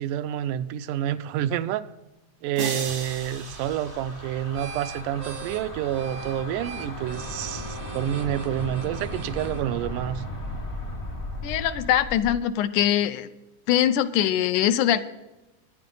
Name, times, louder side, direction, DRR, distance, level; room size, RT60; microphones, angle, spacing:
voice 1, 0.0-1.9 2.4-10.2, right 11 dB, 85° right, 2.2 m, -28 dB
sound 1, 2.6-4.8, right 4 dB, 45° right, 0.9 m, -36 dB
sound 2, 2.7-12.4, left 1 dB, 50° left, 0.6 m, -37 dB
sound 3, 2.8-11.7, right 4 dB, 65° right, 1.2 m, -42 dB
voice 2, 11.4-13.3 13.7-15.0, left 11 dB, 80° left, 2.1 m, -22 dB
20.0 x 10.0 x 3.9 m
omnidirectional pair, 3.7 m